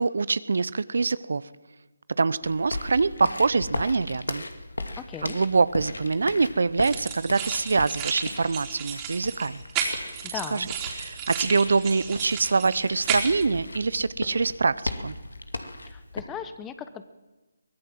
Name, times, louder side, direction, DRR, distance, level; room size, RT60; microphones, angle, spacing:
voice 1, 0.0-1.4 2.2-4.4 5.2-9.6 10.5-10.7 11.0-15.1, right 4 dB, 60° right, 18 dB, 0.8 m, -24 dB
sound 1, 2.4-16.2, left 2 dB, 75° left, 2.5 m, -37 dB
voice 2, 5.0-5.4 10.2-10.7 15.9-17.1, left 8 dB, 10° left, 11 dB, 1.0 m, -38 dB
sound 2, 6.8-13.4, right 7 dB, 20° right, 3.7 m, -33 dB
23.5 x 18.5 x 7.7 m, 1.1 s
figure-of-eight pair, 150°, 0 cm